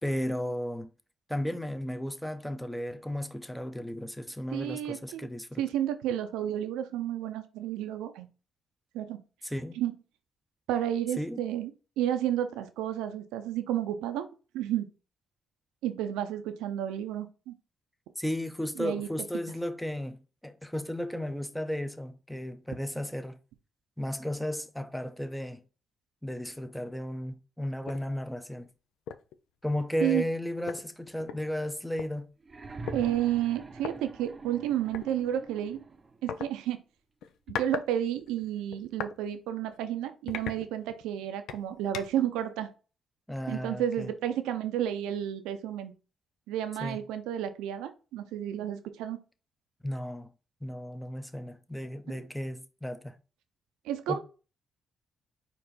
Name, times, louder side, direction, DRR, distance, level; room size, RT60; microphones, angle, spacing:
voice 1, 0.0-0.9 1.3-5.6 9.4-9.7 11.2-11.4 18.2-23.4 24.0-25.6 26.2-28.7 29.6-32.3 43.3-44.1 46.8-47.0 49.8-50.3 50.6-53.1 54.1-54.2, left 1 dB, 5° left, 0.8 m, -34 dB
voice 2, 4.5-5.3 5.6-8.3 8.9-9.2 9.8-9.9 10.7-11.7 12.0-14.3 14.5-14.9 15.8-17.5 18.8-19.1 30.0-30.2 32.9-35.8 36.2-36.8 37.5-42.7 43.5-45.9 46.5-49.2 52.1-52.2 53.8-54.2, right 11 dB, 85° right, 0.5 m, -31 dB
sound 1, 27.9-28.1 28.5-28.6 29.1-29.3 30.3-30.4 30.7-32.1 32.9-33.0 33.8-33.9 34.9-35.1 36.3-36.5 37.2-37.9 38.2-39.2 39.6-39.8 40.3-41.1 41.5-42.3, left 8 dB, 80° left, 0.4 m, -38 dB
sound 2, 32.4-36.3 37.5-37.6, right 3 dB, 35° right, 0.7 m, -44 dB
4.5 x 2.8 x 4.1 m
hypercardioid pair, 50°, 0 cm